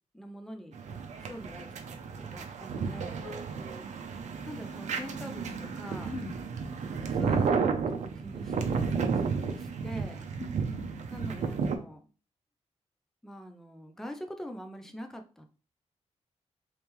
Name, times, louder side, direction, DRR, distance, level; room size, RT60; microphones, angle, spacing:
voice 1, 0.1-0.8 1.2-3.2 4.5-6.1 7.1-10.2 11.1-12.0 13.2-15.4, equal, 5° left, 5 dB, 0.4 m, -44 dB
sound 1, 0.7-11.8, right 5 dB, 85° right, 0.5 m, -32 dB
voice 2, 3.2-3.8 6.1-6.3 10.4-10.8, left 3 dB, 50° left, 2 dB, 0.9 m, -42 dB
3.2 x 3.0 x 3.4 m, 0.37 s
wide cardioid pair, 170°, 12 cm